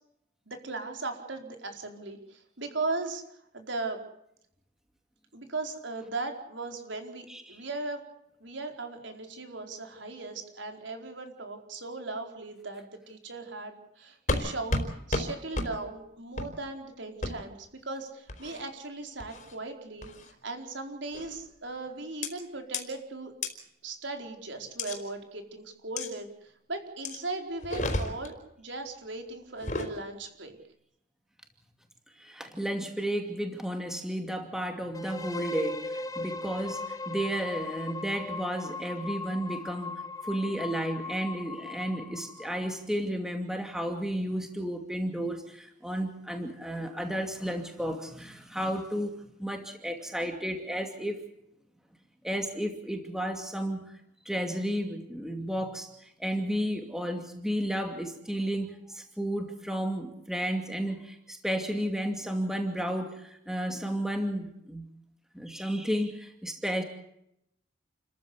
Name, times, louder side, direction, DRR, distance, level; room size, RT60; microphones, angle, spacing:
voice 1, 0.5-3.2 3.5-4.0 5.3-8.0 8.4-14.8 15.1-20.1 20.4-23.3 23.8-30.6, right 3 dB, 75° right, 4 dB, 4.6 m, -38 dB
voice 2, 7.3-7.6 32.2-51.2 52.2-53.9 54.3-64.9 65.3-66.8, equal, 5° right, 4 dB, 2.5 m, -33 dB
sound 1, 14.3-14.4 14.7-14.9 15.1-15.3 15.5-15.7 16.4-16.5 17.2-17.3 18.3-18.6 19.2-19.5 20.0-20.3 21.1-21.4 22.2-22.3 22.7-22.8 23.4-23.5 24.8-25.0 26.0-26.1 27.0-27.2 27.6-28.3 29.5-29.9, left 2 dB, 40° left, 4.2 m, -31 dB
sound 2, 34.9-42.7, left 3 dB, 20° left, 1.1 m, -38 dB
30.0 x 14.5 x 8.2 m, 0.78 s
head